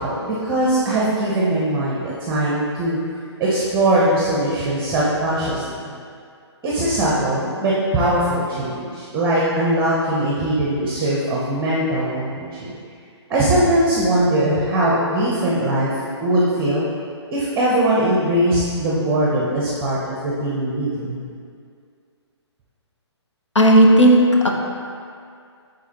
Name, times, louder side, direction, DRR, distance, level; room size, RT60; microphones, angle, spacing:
voice 1, 0.0-3.0 3.4-5.9 6.6-12.7 13.3-15.9 16.2-16.9 17.3-21.2, right 1 dB, 15° right, -6 dB, 0.7 m, -20 dB
voice 2, 23.5-24.5, right 1 dB, 85° left, 0 dB, 0.9 m, -12 dB
8.2 x 3.9 x 2.9 m, 2.3 s
figure-of-eight pair, 135°, 15 cm